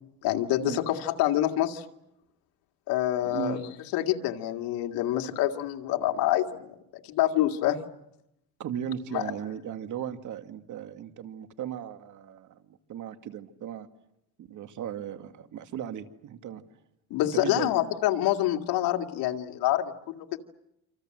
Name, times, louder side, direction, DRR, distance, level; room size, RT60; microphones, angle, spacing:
voice 1, 0.2-1.8 2.9-3.6 3.9-6.7 7.1-7.8 9.1-9.2 17.1-20.4, left 13 dB, 85° left, 4 dB, 2.2 m, -26 dB
voice 2, 3.2-3.6 8.6-13.9 14.4-16.6 17.3-17.8, right 9 dB, 60° right, 8 dB, 2.2 m, -37 dB
27.5 x 26.5 x 7.8 m, 0.83 s
cardioid pair, 110°, 35 cm